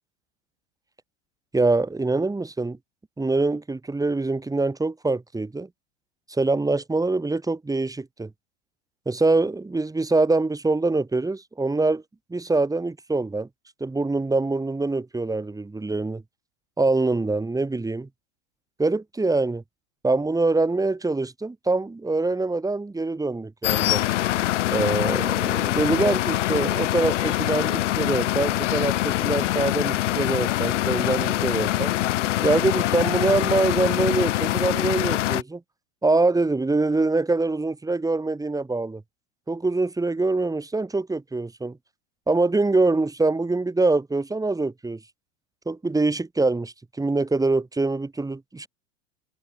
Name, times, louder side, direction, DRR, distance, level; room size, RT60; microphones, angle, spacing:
voice 1, 1.5-2.8 3.2-5.7 6.3-8.3 9.1-12.0 12.3-13.5 13.8-16.2 16.8-18.1 18.8-19.6 20.0-24.1 24.7-31.9 32.4-35.6 36.0-39.0 39.5-41.8 42.3-45.0 45.7-48.7, right 3 dB, 10° right, 6.3 m, -24 dB
sound 1, 23.6-35.4, left 14 dB, 75° left, 3.5 m, -24 dB
hypercardioid pair, 110°, 37 cm